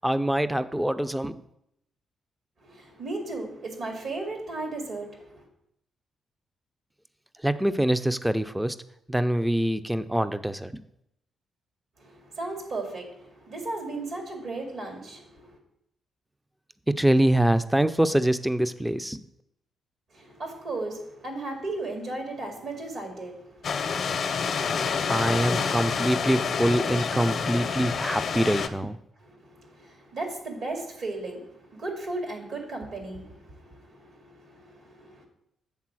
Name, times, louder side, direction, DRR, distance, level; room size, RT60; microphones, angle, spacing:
voice 1, 0.0-1.4 7.4-8.8 9.1-10.8 16.9-19.2 25.1-29.0, right 1 dB, 5° right, 12 dB, 0.4 m, -24 dB
voice 2, 2.6-5.5 12.0-15.6 20.1-23.7 29.2-35.3, right 2 dB, 65° right, 2 dB, 2.1 m, -36 dB
sound 1, 23.6-28.7, left 6 dB, 60° left, 0.6 m, -28 dB
8.4 x 3.8 x 6.1 m, 0.77 s
cardioid pair, 80°, 0 cm